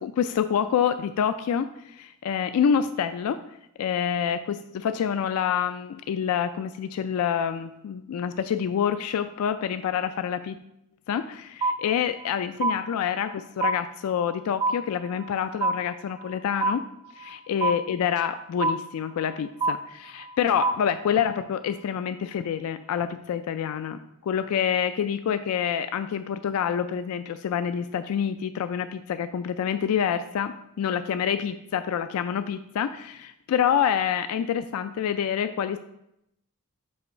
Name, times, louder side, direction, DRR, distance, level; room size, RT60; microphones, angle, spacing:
voice 1, 0.0-3.4 3.8-10.6 11.1-16.8 17.2-35.8, left 8 dB, 75° left, 12 dB, 0.3 m, -27 dB
sound 1, 11.6-12.3 12.6-13.3 13.6-14.3 14.6-15.3 15.6-16.3 16.6-17.3 17.6-18.3 18.6-19.3 19.6-20.3 20.6-21.3, right 3 dB, 20° right, 0.4 m, -27 dB
5.6 x 3.7 x 5.2 m, 0.80 s
head